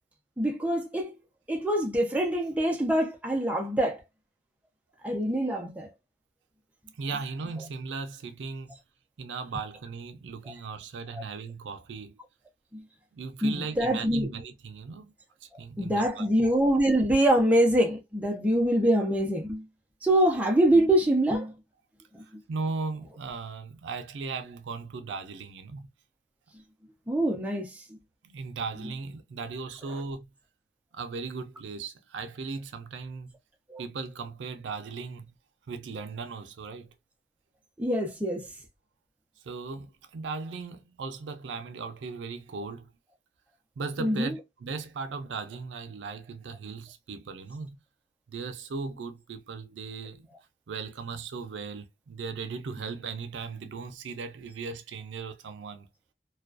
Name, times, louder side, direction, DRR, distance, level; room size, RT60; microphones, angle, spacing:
voice 1, 0.4-1.1 1.5-4.0 5.0-5.9 11.1-11.2 12.7-12.8 13.4-14.3 15.8-19.7 20.0-21.5 22.1-22.2 27.1-27.8 33.7-33.8 37.8-38.4 44.0-44.4, right 1 dB, 10° right, 0.5 m, -24 dB
voice 2, 7.0-8.7 9.2-12.2 13.1-15.1 15.4-16.3 22.2-25.9 28.2-30.3 30.9-33.4 33.8-35.4 35.7-36.9 39.4-42.9 43.8-47.8 48.3-50.3 50.7-55.9, right 4 dB, 90° right, 0.4 m, -37 dB
2.4 x 2.2 x 2.3 m
head